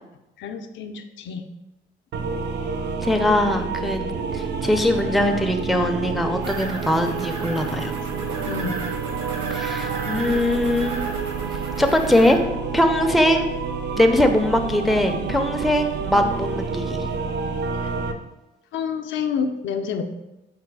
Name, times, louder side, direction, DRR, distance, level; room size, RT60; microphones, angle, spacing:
voice 1, 0.4-1.5 8.5-8.8 10.1-10.2 17.7-17.9 18.7-20.0, left 6 dB, 70° left, 6 dB, 0.4 m, -29 dB
sound 1, 2.1-18.1, right 5 dB, 60° right, 0.4 m, -29 dB
voice 2, 3.0-4.0 4.3-7.9 9.5-11.1 11.8-12.4 12.7-13.6 14.0-17.1, left 1 dB, ahead, 4 dB, 0.4 m, -21 dB
sound 2, 6.4-12.3, right 3 dB, 80° right, 1.0 m, -36 dB
4.7 x 2.2 x 4.6 m, 0.96 s
cardioid pair, 90°, 20 cm